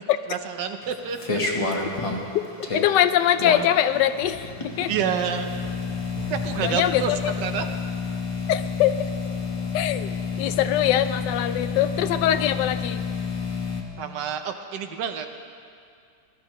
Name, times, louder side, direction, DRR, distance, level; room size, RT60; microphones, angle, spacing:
voice 1, 0.3-1.4 4.9-5.6 6.3-7.1 7.4-7.6 14.0-15.3, right 8 dB, 85° right, 6 dB, 1.4 m, -28 dB
sound 1, 0.8-13.8, left 4 dB, 25° left, 0.9 m, -30 dB
voice 2, 2.7-4.9 6.6-7.3 8.5-9.1 9.7-10.1 10.4-13.0, left 11 dB, 85° left, 11 dB, 1.2 m, -22 dB
sound 2, 4.2-8.9 9.2-9.3, right 3 dB, 60° right, 1.6 m, -44 dB
20.5 x 12.0 x 3.1 m, 2.4 s
omnidirectional pair, 1.8 m